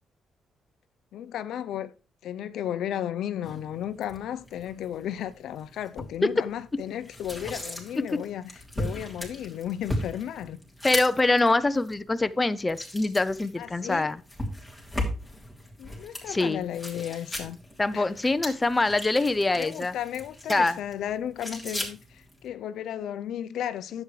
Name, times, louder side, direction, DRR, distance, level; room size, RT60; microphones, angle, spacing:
voice 1, 1.1-1.9 2.2-10.6 13.6-14.1 15.8-17.6 17.9-18.2 19.5-24.0, left 10 dB, 80° left, 0.6 m, -34 dB
sound 1, 3.4-22.5, left 1 dB, 5° right, 2.9 m, -38 dB
voice 2, 10.8-14.2 16.3-16.7 17.8-19.9 20.5-20.8, left 2 dB, 20° left, 0.6 m, -24 dB
10.5 x 8.2 x 3.2 m
cardioid pair, 90°, 0 cm